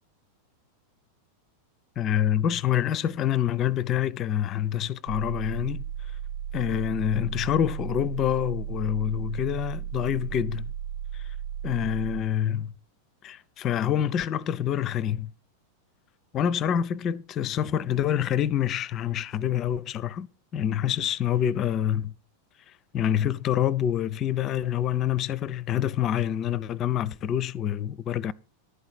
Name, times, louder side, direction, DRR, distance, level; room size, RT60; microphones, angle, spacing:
voice 1, 2.0-5.8 6.5-10.7 11.6-12.7 13.2-15.3 16.3-20.3 20.5-22.1 22.9-28.3, left 10 dB, 30° left, 0.5 m, -26 dB
sound 1, 5.1-12.2, right 10 dB, 85° right, 1.6 m, -35 dB
11.5 x 4.8 x 7.5 m
figure-of-eight pair, 90°, 0 cm